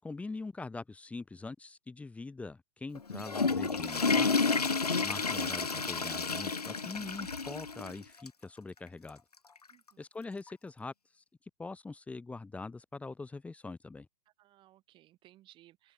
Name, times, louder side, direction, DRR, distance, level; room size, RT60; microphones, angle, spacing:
voice 1, 0.0-4.3 5.0-9.2 10.0-11.2 11.6-14.1, left 3 dB, 5° left, 5.6 m, -43 dB
Water / Toilet flush, 2.9-7.9 8.3-8.4 9.1-9.2 10.5-10.6, left 4 dB, 85° left, 1.6 m, -30 dB
voice 2, 9.7-10.0 14.4-15.9, right 15 dB, 25° right, 7.4 m, -61 dB
open air
figure-of-eight pair, 120°, 19 cm